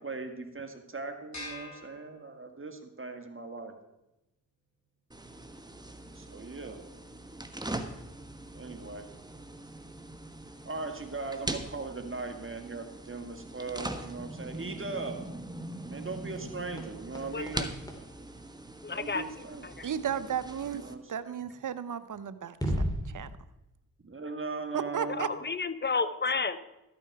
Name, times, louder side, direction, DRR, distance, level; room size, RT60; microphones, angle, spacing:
voice 1, 0.0-3.7 6.1-6.8 8.5-9.1 10.7-15.2 15.9-17.7 18.9-19.6 20.7-21.4 24.0-25.4 26.0-26.1, right 3 dB, 35° right, 6 dB, 1.9 m, -39 dB
sound 1, 1.3-2.8, left 2 dB, 50° left, 5.1 m, -45 dB
sound 2, 5.1-20.9, right 1 dB, 10° right, 1.3 m, -42 dB
sound 3, 15.6-19.4 21.7-21.8 22.5-23.1, equal, 10° left, 2.9 m, -38 dB
voice 2, 17.3-17.7 18.8-19.2 19.6-19.9 25.2-26.6, left 4 dB, 30° left, 13 dB, 0.9 m, -31 dB
voice 3, 19.8-22.7 23.1-23.3 24.7-25.3, right 8 dB, 55° right, 14 dB, 0.8 m, -34 dB
13.0 x 8.9 x 4.8 m, 0.93 s
cardioid pair, 45°, 36 cm